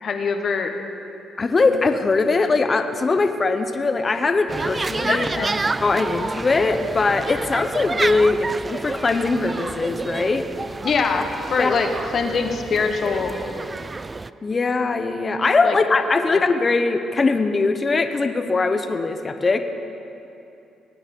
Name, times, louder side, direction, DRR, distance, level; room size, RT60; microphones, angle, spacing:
voice 1, 0.0-0.7 5.1-5.6 10.8-13.4 15.6-15.7, left 5 dB, 50° left, 5 dB, 1.3 m, -23 dB
voice 2, 1.4-5.3 5.8-10.4 11.6-11.7 14.4-19.6, left 3 dB, 30° left, 8 dB, 0.9 m, -21 dB
sound 1, 4.5-14.3, right 3 dB, 25° right, 0.3 m, -29 dB
19.0 x 9.3 x 5.4 m, 2.8 s
cardioid pair, 90°, 0 cm